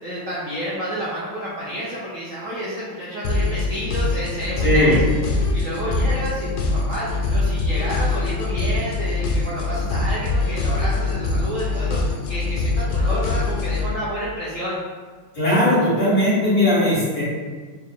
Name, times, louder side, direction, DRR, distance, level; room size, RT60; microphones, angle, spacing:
voice 1, 0.0-5.0 5.5-14.8, equal, 60° right, -8 dB, 0.8 m, -30 dB
sound 1, 3.2-13.9, left 3 dB, 85° left, 0.8 m, -23 dB
voice 2, 4.6-5.0 15.3-17.2, left 1 dB, 45° left, -10 dB, 2.0 m, -18 dB
4.4 x 2.5 x 3.6 m, 1.5 s
omnidirectional pair, 2.2 m